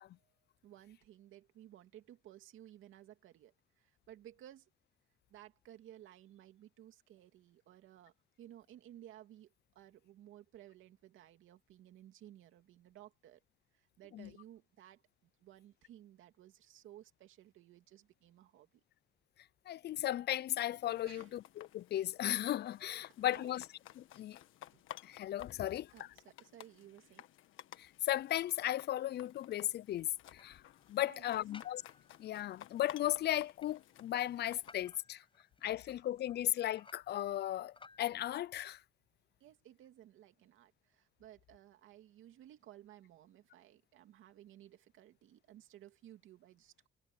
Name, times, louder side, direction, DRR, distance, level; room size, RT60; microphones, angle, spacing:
voice 1, 0.6-4.7 5.3-13.4 13.7-18.8 21.0-21.4 23.0-23.5 24.7-24.8 25.9-27.3 31.0-31.4 39.4-46.9, right 12 dB, 85° right, 2.6 m, -57 dB
voice 2, 19.7-23.6 24.0-24.4 25.0-25.9 28.0-30.6 30.9-31.8 32.2-35.2 35.6-38.8, left 13 dB, 55° left, 0.4 m, -36 dB
sound 1, 20.8-34.7, left 12 dB, 85° left, 1.5 m, -56 dB
sound 2, 29.1-38.0, left 4 dB, 25° left, 4.9 m, -63 dB
cardioid pair, 90°, 20 cm